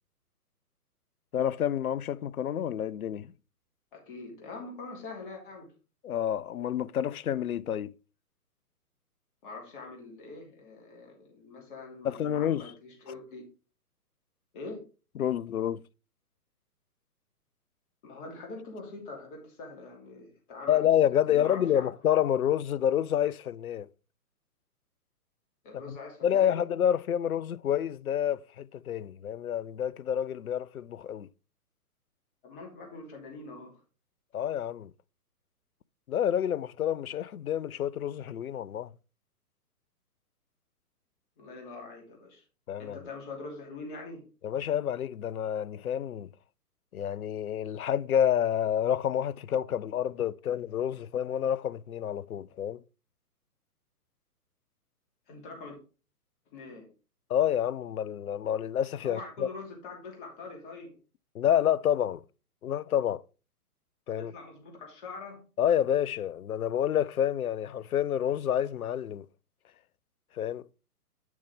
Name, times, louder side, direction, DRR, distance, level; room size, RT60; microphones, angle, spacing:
voice 1, 1.3-3.3 6.0-7.9 12.0-12.7 15.2-15.8 20.7-23.9 25.9-26.0 26.2-31.3 34.3-34.9 36.1-38.9 42.7-43.0 44.4-46.3 46.9-52.8 57.3-59.5 61.3-62.2 62.6-63.2 64.1-64.3 65.6-69.3 70.3-70.7, left 10 dB, 65° left, 0.5 m, -28 dB
voice 2, 3.9-5.7 9.4-13.4 14.5-14.8 18.0-20.9 21.3-21.9 25.6-26.5 32.4-33.8 41.4-42.4 42.8-44.2 55.3-55.8 56.5-56.9 59.0-61.0 64.2-65.4, left 3 dB, 35° left, 2.7 m, -43 dB
9.2 x 6.1 x 3.6 m
figure-of-eight pair, 125°, 47 cm